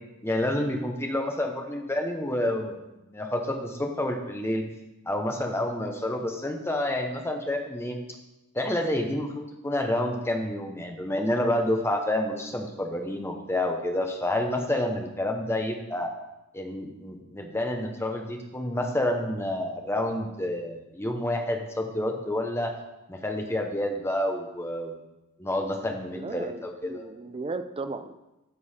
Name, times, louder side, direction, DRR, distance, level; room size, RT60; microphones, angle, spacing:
voice 1, 0.2-2.8 3.1-4.6 5.1-8.0 8.5-16.1 16.5-22.7 23.1-24.9 25.4-27.0, left 1 dB, 10° left, 3 dB, 0.8 m, -29 dB
voice 2, 26.1-28.1, right 3 dB, 25° right, 10 dB, 0.4 m, -36 dB
9.6 x 5.4 x 4.2 m, 0.97 s
head